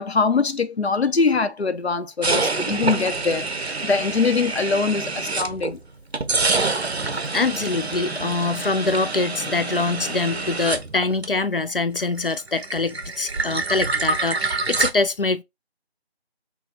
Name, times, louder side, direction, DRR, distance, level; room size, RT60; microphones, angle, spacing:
voice 1, 0.0-5.8, left 4 dB, 70° left, 0.9 m, -23 dB
sound 1, 2.2-5.8 6.1-11.7 12.0-14.9, right 3 dB, 70° right, 0.9 m, -26 dB
voice 2, 7.3-15.4, left 3 dB, 55° left, 0.5 m, -24 dB
6.0 x 2.2 x 3.9 m
figure-of-eight pair, 170°, 33 cm